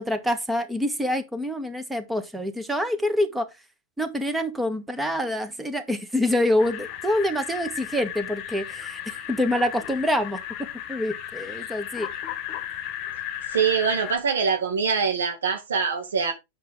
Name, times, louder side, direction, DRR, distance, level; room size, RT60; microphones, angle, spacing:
voice 1, 0.0-3.5 4.0-10.4 10.9-12.1, left 1 dB, 10° right, 1.6 m, -26 dB
sound 1, 6.6-14.2, left 11 dB, 45° left, 1.2 m, -35 dB
voice 2, 13.5-16.3, right 6 dB, 80° right, 2.2 m, -24 dB
8.3 x 6.0 x 3.8 m
hypercardioid pair, 100°, 0 cm